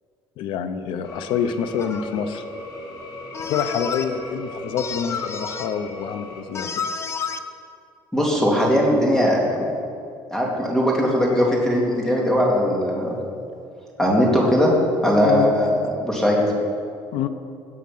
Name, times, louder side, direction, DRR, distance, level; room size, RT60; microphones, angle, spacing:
voice 1, 0.4-2.4 3.5-6.7 15.2-15.5 17.1-17.3, left 7 dB, 75° left, 10 dB, 0.9 m, -26 dB
sound 1, 1.0-6.4, left 2 dB, 55° left, 2.7 m, -37 dB
sound 2, 1.8-2.1 3.3-4.0 4.8-5.7 6.5-7.4, left 6 dB, 30° left, 0.7 m, -30 dB
voice 2, 8.1-9.7 10.3-13.2 14.0-14.7 15.0-16.4, equal, 5° left, -2 dB, 2.5 m, -19 dB
18.0 x 7.4 x 5.7 m, 2.4 s
cardioid pair, 145°, 9 cm